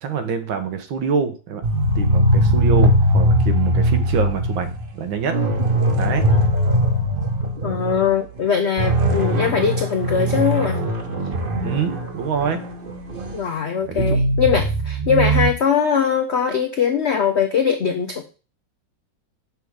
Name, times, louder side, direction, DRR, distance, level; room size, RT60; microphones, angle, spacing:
voice 1, 0.0-1.6 2.0-5.4 5.9-6.2 11.6-12.6 13.9-14.2, right 6 dB, 90° right, 8 dB, 1.8 m, -25 dB
sound 1, 1.6-8.1 8.4-8.5 8.8-13.4 13.9-15.5, equal, 40° right, 0.9 m, -20 dB
voice 2, 7.6-10.8 13.3-18.2, left 7 dB, 80° left, 6 dB, 0.6 m, -21 dB
6.7 x 3.6 x 6.2 m, 0.35 s
omnidirectional pair, 2.1 m